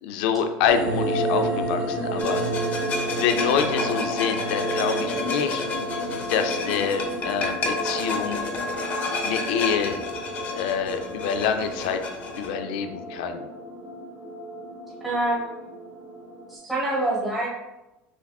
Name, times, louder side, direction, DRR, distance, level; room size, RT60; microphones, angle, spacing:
voice 1, 0.0-2.4 3.2-5.7 6.3-8.4 9.2-10.0 10.4-12.0 12.4-13.5, left 7 dB, 75° left, 7 dB, 0.4 m, -26 dB
sound 1, 0.7-16.5, right 1 dB, 30° right, 0.8 m, -31 dB
sound 2, 2.2-12.5, left 3 dB, 35° left, 0.7 m, -31 dB
voice 2, 15.0-15.6 16.5-17.5, right 1 dB, 10° right, -7 dB, 1.2 m, -26 dB
6.8 x 2.5 x 2.3 m, 0.99 s
cardioid pair, 160°, 5 cm